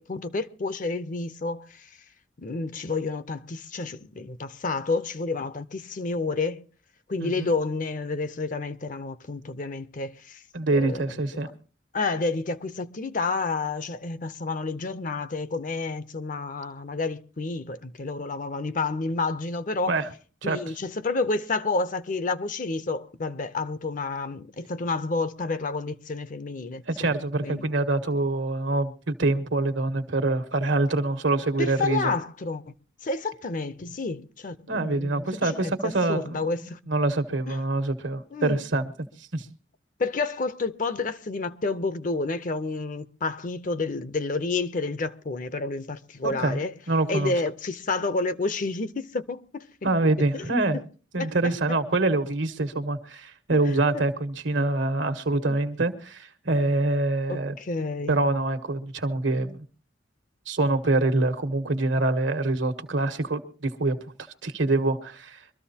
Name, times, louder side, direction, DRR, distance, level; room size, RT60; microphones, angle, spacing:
voice 1, 0.0-1.9 2.4-6.6 7.1-10.4 10.7-11.1 11.9-20.0 20.4-27.1 27.4-27.6 31.6-32.7 33.0-36.8 37.5-37.6 38.3-38.6 40.0-46.7 47.1-49.7 50.3-50.5 50.7-50.8 51.2-51.5 55.5-55.6 57.3-58.2, left 3 dB, 45° left, 0.6 m, -30 dB
voice 2, 7.2-7.5 10.5-11.5 19.8-20.1 20.4-20.6 26.9-32.1 34.7-36.4 36.9-38.9 39.2-39.5 46.2-46.6 46.9-47.3 49.8-50.8 51.1-57.5 58.1-59.6 60.5-64.0 64.4-65.4, right 2 dB, 80° right, 1.4 m, -25 dB
23.5 x 13.5 x 2.8 m
head